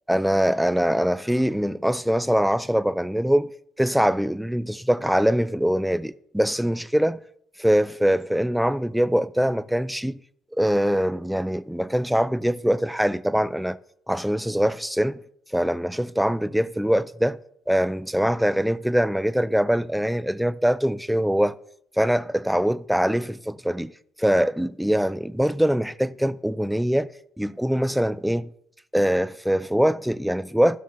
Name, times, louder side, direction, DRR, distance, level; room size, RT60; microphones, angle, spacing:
voice 1, 0.1-3.5 3.8-7.2 7.6-10.2 10.6-13.8 14.1-15.2 15.5-17.4 17.7-21.6 22.0-23.9 24.2-27.1 27.4-28.5 28.9-30.8, equal, ahead, 0.3 m, -23 dB
14.0 x 6.4 x 2.6 m
cardioid pair, 100°, 0 cm